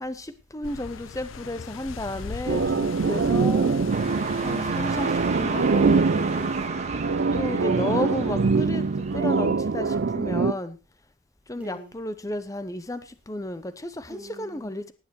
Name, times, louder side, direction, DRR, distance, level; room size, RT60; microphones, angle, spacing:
voice 1, 0.0-3.7 4.4-6.1 7.3-10.8 11.5-14.9, left 1 dB, 15° left, 12 dB, 0.8 m, -33 dB
sound 1, 0.6-6.7, left 5 dB, 85° left, 0.6 m, -40 dB
sound 2, 2.5-10.5, right 4 dB, 60° right, 0.5 m, -24 dB
sound 3, 3.9-10.2, right 4 dB, 35° right, 1.7 m, -33 dB
voice 2, 6.2-7.2 11.6-11.9 14.1-14.9, right 1 dB, 5° right, -1 dB, 4.1 m, -44 dB
18.5 x 9.3 x 3.2 m, 0.28 s
head